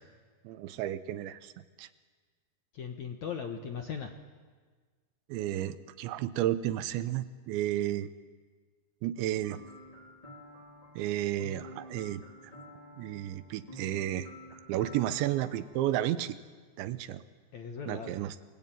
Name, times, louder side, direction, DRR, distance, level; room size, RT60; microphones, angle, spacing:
voice 1, 0.4-1.5 1.8-1.9 5.3-8.1 9.0-9.6 11.0-12.5 13.0-14.3 14.7-16.4 16.8-17.2 17.9-18.4, right 13 dB, 85° right, 13 dB, 3.2 m, -32 dB
voice 2, 2.7-4.1 17.5-18.1, left 7 dB, 60° left, 4 dB, 2.0 m, -38 dB
sound 1, 9.4-15.8, equal, 10° left, 2.8 m, -50 dB
29.5 x 20.5 x 9.0 m, 1.5 s
omnidirectional pair, 5.1 m